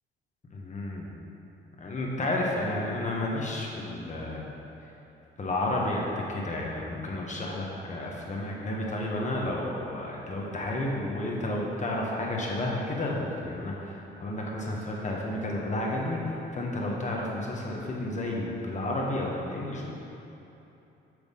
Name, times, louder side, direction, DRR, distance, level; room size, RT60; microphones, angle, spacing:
voice 1, 0.5-1.1 1.8-4.4 5.4-19.9, left 1 dB, 35° left, -2 dB, 1.3 m, -31 dB
7.0 x 6.2 x 3.6 m, 2.9 s
cardioid pair, 90°, 20 cm